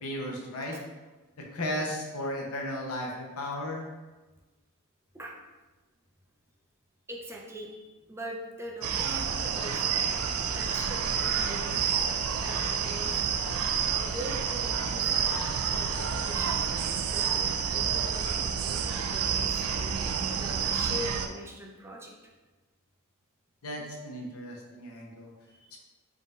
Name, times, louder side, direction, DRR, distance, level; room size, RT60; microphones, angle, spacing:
voice 1, 0.0-0.7 1.4-3.8 23.6-25.3 25.7-25.8, left 1 dB, 80° left, -1 dB, 0.8 m, -35 dB
voice 2, 7.1-7.8 8.1-10.0 10.5-11.8 12.3-13.2 13.9-15.4 15.7-16.6 17.1-20.1 20.4-22.1 25.5-25.8, equal, 10° right, -1 dB, 0.4 m, -42 dB
sound 1, 8.8-21.3, right 7 dB, 70° right, 0.3 m, -29 dB
4.0 x 3.7 x 2.4 m, 1.2 s
head